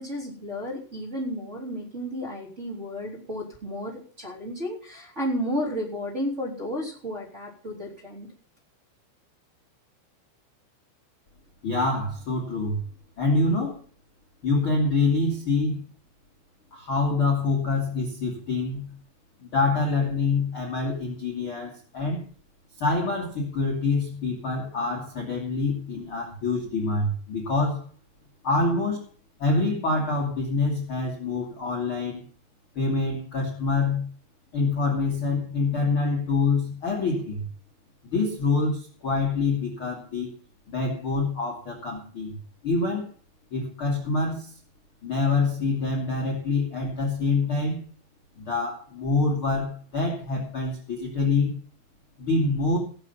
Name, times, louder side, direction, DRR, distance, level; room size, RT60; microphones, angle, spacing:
voice 1, 0.0-8.3, equal, 15° right, -5 dB, 3.3 m, -32 dB
voice 2, 11.6-12.8 13.2-13.8 14.4-15.8 16.7-18.9 19.4-22.2 22.8-27.8 28.4-29.0 29.4-32.2 32.7-34.0 34.5-37.5 38.1-40.3 40.7-43.1 43.5-44.5 45.0-47.8 48.4-51.6 52.2-52.8, left 3 dB, 35° left, -1 dB, 2.3 m, -26 dB
17.5 x 7.5 x 5.6 m, 0.42 s
omnidirectional pair, 5.6 m